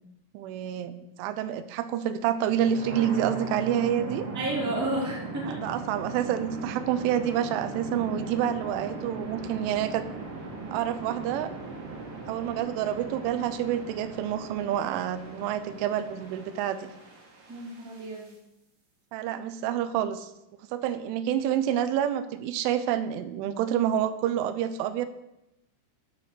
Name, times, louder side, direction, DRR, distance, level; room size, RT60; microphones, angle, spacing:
voice 1, 0.3-4.3 5.5-10.0 10.7-11.5 12.3-16.9 19.1-20.3 20.7-25.1, right 10 dB, 85° right, 11 dB, 3.1 m, -28 dB
sound 1, 2.4-18.3, right 4 dB, 40° right, 2.0 m, -38 dB
voice 2, 4.3-5.7 17.5-18.3, right 2 dB, 5° right, -4 dB, 1.5 m, -31 dB
12.0 x 6.2 x 6.6 m, 0.88 s
omnidirectional pair, 5.5 m